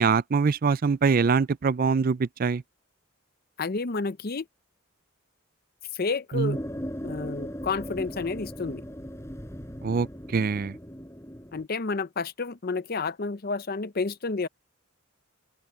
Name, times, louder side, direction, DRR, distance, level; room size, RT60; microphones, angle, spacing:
voice 1, 0.0-2.6 6.3-6.6 9.8-10.1 10.3-10.7, right 5 dB, 40° right, 0.4 m, -23 dB
voice 2, 3.6-4.4 5.9-6.6 7.0-8.8 11.5-14.5, left 4 dB, 45° left, 0.6 m, -30 dB
sound 1, 6.5-11.6, equal, 15° left, 5.3 m, -38 dB
open air
head